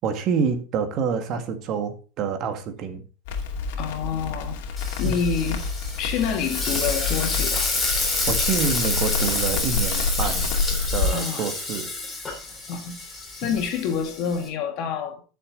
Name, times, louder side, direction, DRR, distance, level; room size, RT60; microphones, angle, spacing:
voice 1, 0.0-3.0 5.0-5.2 8.3-10.5 10.9-11.9 13.4-13.5, right 6 dB, 45° right, 1.9 m, -27 dB
Crackle, 3.3-11.1, left 4 dB, 75° left, 2.4 m, -28 dB
voice 2, 3.8-4.6 5.0-5.6 6.0-7.7 11.1-11.5 12.7-13.0 13.4-15.2, left 7 dB, 50° left, 2.6 m, -27 dB
Frying (food), 4.8-14.5, left 3 dB, 15° left, 3.7 m, -29 dB
12.0 x 7.0 x 3.9 m
supercardioid pair, 145°, 0 cm